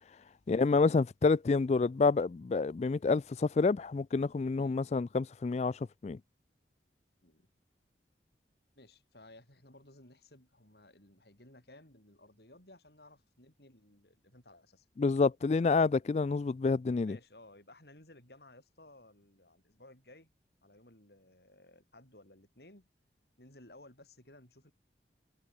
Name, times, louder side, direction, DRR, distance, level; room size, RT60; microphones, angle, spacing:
voice 1, 0.5-6.2 15.0-17.2, left 4 dB, 40° left, 0.3 m, -28 dB
voice 2, 8.7-14.9 17.0-20.3 20.6-22.9 23.4-24.7, left 1 dB, 65° left, 6.9 m, -57 dB
head